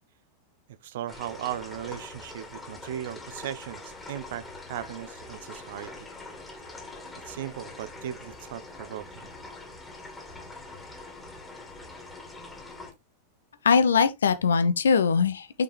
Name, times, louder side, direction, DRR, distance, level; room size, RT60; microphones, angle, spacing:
voice 1, 0.8-6.1 7.3-9.3, right 11 dB, 55° right, 0.5 m, -37 dB
sound 1, 1.1-12.9, left 2 dB, 10° left, 2.2 m, -44 dB
voice 2, 13.6-15.6, left 5 dB, 70° left, 0.8 m, -21 dB
5.9 x 5.2 x 3.3 m
figure-of-eight pair, 90°, 0 cm